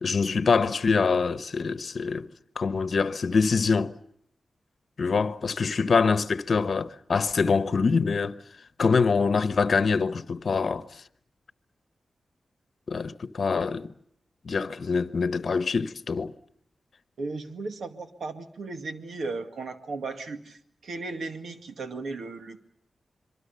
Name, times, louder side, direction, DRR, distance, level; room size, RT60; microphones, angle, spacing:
voice 1, 0.0-2.3 2.6-3.9 5.0-8.4 8.8-10.9 12.9-13.9 14.4-16.3, left 5 dB, 60° left, 0.9 m, -24 dB
voice 2, 17.2-22.7, right 3 dB, 85° right, 2.2 m, -36 dB
26.5 x 23.5 x 6.9 m
wide cardioid pair, 90°, 0 cm